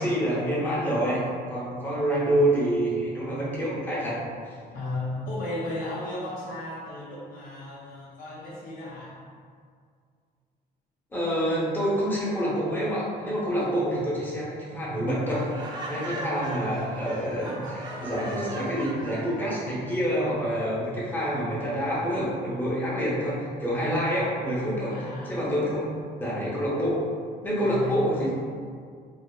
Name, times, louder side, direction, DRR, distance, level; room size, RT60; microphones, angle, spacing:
voice 1, 0.0-4.2 11.1-24.9 25.3-25.8 26.2-27.0 27.4-28.3, equal, 10° left, -8 dB, 0.7 m, -27 dB
voice 2, 4.7-9.2 16.0-16.2 24.9-25.4 27.6-28.1, left 2 dB, 55° left, -6 dB, 0.5 m, -35 dB
Laughter, 15.4-19.5, right 1 dB, 25° right, 0.4 m, -37 dB
2.7 x 2.0 x 2.2 m, 2.1 s
cardioid pair, 110°, 17 cm